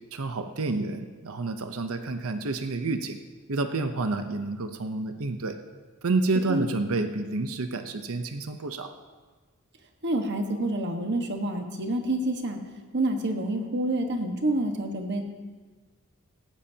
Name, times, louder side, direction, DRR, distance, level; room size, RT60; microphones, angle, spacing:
voice 1, 0.1-3.2 3.5-5.6 6.0-8.9, right 3 dB, 75° right, 8 dB, 0.8 m, -29 dB
voice 2, 10.0-12.6 12.9-15.2, right 1 dB, 55° right, 4 dB, 1.4 m, -28 dB
18.0 x 15.5 x 2.9 m, 1.4 s
head